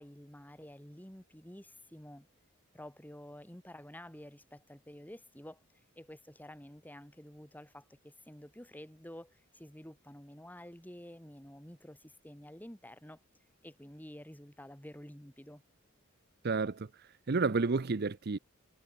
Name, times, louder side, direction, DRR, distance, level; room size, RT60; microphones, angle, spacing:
voice 1, 0.0-2.3 2.7-5.6 6.0-13.2 13.6-15.6, equal, 10° left, 3.2 m, -50 dB
voice 2, 16.4-16.9 17.3-18.4, right 4 dB, 50° right, 0.6 m, -30 dB
head